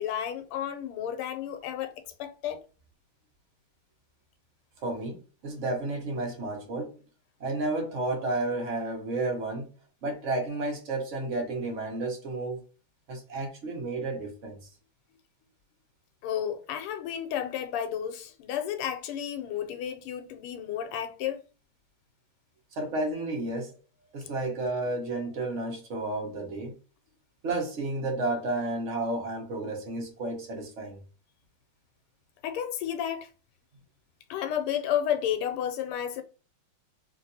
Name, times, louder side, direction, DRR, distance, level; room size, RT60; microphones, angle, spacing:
voice 1, 0.0-1.9 2.2-2.6 16.2-21.4 32.4-33.3 34.3-36.2, left 9 dB, 90° left, 1.5 m, -32 dB
voice 2, 4.8-6.9 7.4-9.7 10.0-12.6 13.1-14.6 22.8-23.8 24.1-26.7 27.4-31.0, right 2 dB, 50° right, 0.9 m, -32 dB
3.2 x 2.9 x 2.7 m
omnidirectional pair, 2.4 m